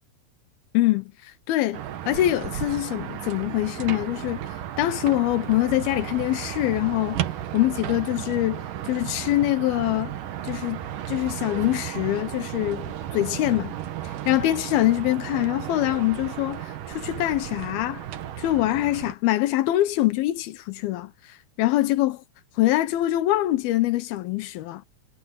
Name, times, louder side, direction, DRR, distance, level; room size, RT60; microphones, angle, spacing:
voice 1, 0.7-1.8 2.1-4.4 4.8-7.2 7.5-10.1 10.4-10.8 11.1-13.8 14.3-18.0 18.4-21.1 21.6-22.2 22.6-24.8, left 15 dB, 80° left, 2.7 m, -24 dB
sound 1, 1.7-19.1, right 11 dB, 65° right, 2.7 m, -34 dB
omnidirectional pair, 4.5 m